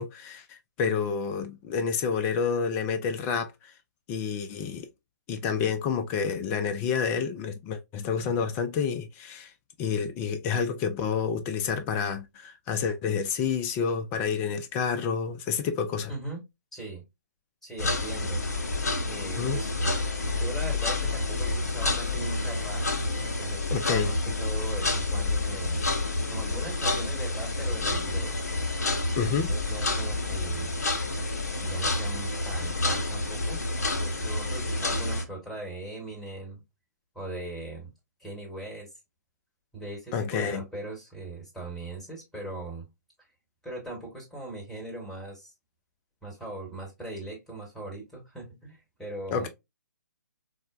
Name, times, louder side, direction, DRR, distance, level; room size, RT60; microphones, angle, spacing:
voice 1, 0.0-3.5 4.1-4.9 5.3-9.5 9.8-16.1 19.4-19.6 23.7-24.1 29.2-29.5 40.1-40.6 49.3-49.5, left 6 dB, 20° left, 0.4 m, -29 dB
voice 2, 16.1-16.4 16.7-17.0 17.6-18.4 19.1-19.9 20.3-22.8 23.4-25.8 26.3-28.4 29.3-30.7 31.6-33.6 34.0-36.6 37.1-37.9 38.2-38.9 39.7-42.9 43.6-45.5 46.2-49.5, right 2 dB, 5° left, 1.3 m, -39 dB
sound 1, 17.8-35.2, left 2 dB, 55° left, 0.8 m, -29 dB
4.3 x 2.1 x 2.3 m
figure-of-eight pair, 135°, 10 cm